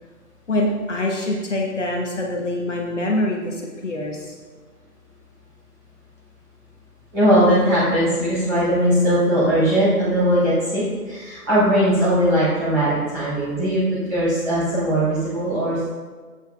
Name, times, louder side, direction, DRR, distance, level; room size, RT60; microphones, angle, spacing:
voice 1, 0.5-4.3, left 1 dB, 50° left, -1 dB, 1.1 m, -24 dB
voice 2, 7.1-13.8 14.1-15.9, equal, 10° right, -11 dB, 2.5 m, -19 dB
11.0 x 8.1 x 2.2 m, 1.4 s
figure-of-eight pair, 155°, 46 cm